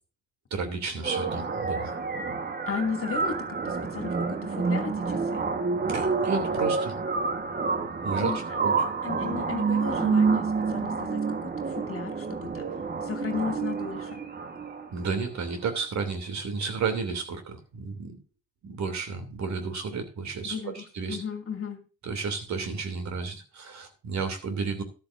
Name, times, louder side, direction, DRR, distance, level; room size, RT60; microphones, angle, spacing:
voice 1, 0.5-1.9 5.9-6.9 8.0-8.7 14.9-18.2 18.6-21.2 22.0-24.8, right 5 dB, 50° right, 7 dB, 3.0 m, -32 dB
sound 1, 1.0-15.0, right 4 dB, 25° right, 1.4 m, -28 dB
voice 2, 2.7-5.4 8.2-8.6 9.0-12.7 13.0-14.2 20.4-21.8, left 5 dB, 35° left, 5 dB, 2.5 m, -35 dB
13.5 x 12.0 x 2.6 m, 0.33 s
hypercardioid pair, 65°, 37 cm